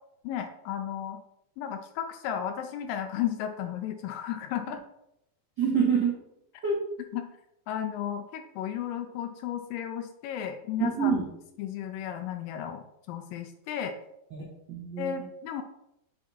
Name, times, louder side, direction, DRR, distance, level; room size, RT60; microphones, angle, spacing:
voice 1, 0.2-1.2 1.6-4.8 7.1-7.3 7.7-11.2 11.6-13.9 15.0-15.6, left 9 dB, 80° left, 6 dB, 2.1 m, -34 dB
voice 2, 5.6-6.1 6.6-6.7 10.8-11.2 14.3-15.3, right 6 dB, 65° right, -6 dB, 1.0 m, -27 dB
7.6 x 3.5 x 4.1 m, 0.84 s
omnidirectional pair, 4.2 m